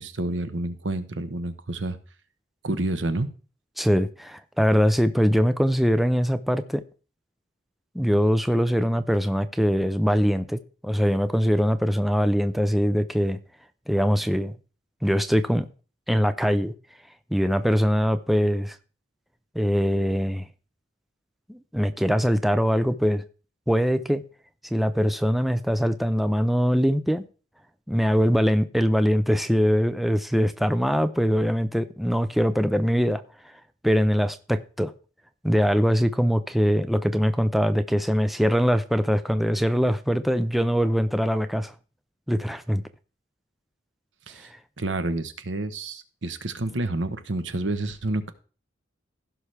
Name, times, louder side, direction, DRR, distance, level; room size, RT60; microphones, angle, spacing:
voice 1, 0.0-2.0 2.6-3.3 44.3-44.5 44.8-48.3, right 2 dB, 80° right, 1.0 m, -29 dB
voice 2, 3.8-6.8 7.9-13.4 13.9-14.5 15.0-15.6 16.1-16.7 17.3-18.8 19.5-20.5 21.5-23.2 23.7-24.2 24.7-27.2 27.9-33.2 33.8-34.9 35.4-41.7 42.3-42.8, equal, ahead, 0.5 m, -22 dB
16.0 x 5.9 x 3.3 m
head